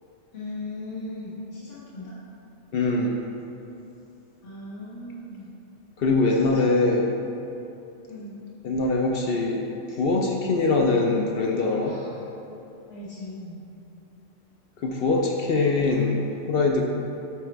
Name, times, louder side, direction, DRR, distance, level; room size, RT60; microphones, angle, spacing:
voice 1, 0.3-2.2 4.4-5.5 6.2-6.4 8.1-8.4 11.8-12.2 12.9-13.6, left 2 dB, 90° left, -10 dB, 1.7 m, -38 dB
voice 2, 2.7-3.2 6.0-7.1 8.6-12.0 14.8-16.8, left 3 dB, 60° left, 0 dB, 0.7 m, -23 dB
9.2 x 4.1 x 3.3 m, 2.8 s
omnidirectional pair, 1.2 m